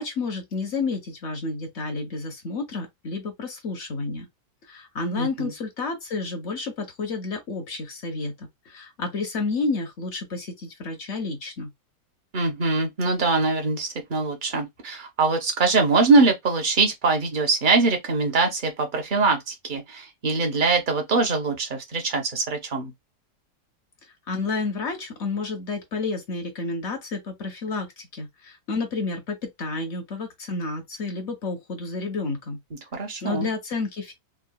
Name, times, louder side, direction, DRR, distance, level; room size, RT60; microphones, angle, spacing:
voice 1, 0.0-4.3 4.7-11.7 24.3-32.6 33.2-34.1, left 3 dB, 50° left, 0.9 m, -30 dB
voice 2, 5.2-5.5 12.3-22.9 32.9-33.5, right 3 dB, 40° right, 0.7 m, -23 dB
3.7 x 2.2 x 2.2 m
omnidirectional pair, 1.8 m